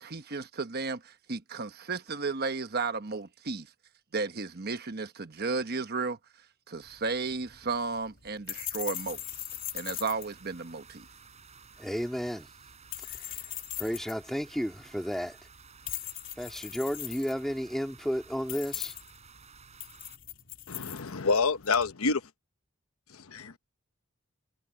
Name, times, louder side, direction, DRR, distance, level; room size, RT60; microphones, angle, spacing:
voice 1, 0.0-3.7 4.1-6.2 6.7-9.2 9.7-11.1, right 4 dB, 50° right, 1.1 m, -33 dB
sound 1, 6.8-21.9, left 14 dB, 65° left, 3.5 m, -42 dB
sound 2, 8.9-20.2, right 6 dB, 30° right, 3.7 m, -55 dB
voice 2, 11.8-12.5 13.1-13.4 13.8-15.4 16.4-18.9, equal, ahead, 2.1 m, -33 dB
voice 3, 20.7-22.2 23.1-23.6, left 4 dB, 85° left, 1.0 m, -28 dB
head